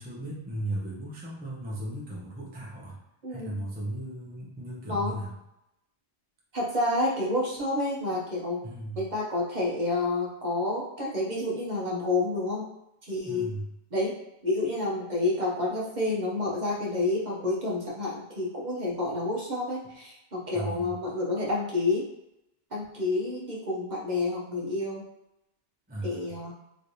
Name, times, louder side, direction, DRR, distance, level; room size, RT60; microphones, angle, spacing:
voice 1, 0.0-3.0 3.3-5.3 8.6-9.1 13.2-13.7 20.5-21.0 25.9-26.4, right 1 dB, 10° right, -5 dB, 0.6 m, -36 dB
voice 2, 3.2-3.5 4.9-5.1 6.5-8.6 9.0-12.7 13.0-13.5 13.9-14.1 14.4-22.1 22.7-25.0 26.0-26.5, left 2 dB, 45° right, -4 dB, 0.9 m, -29 dB
3.1 x 3.1 x 2.7 m, 0.85 s
omnidirectional pair, 1.1 m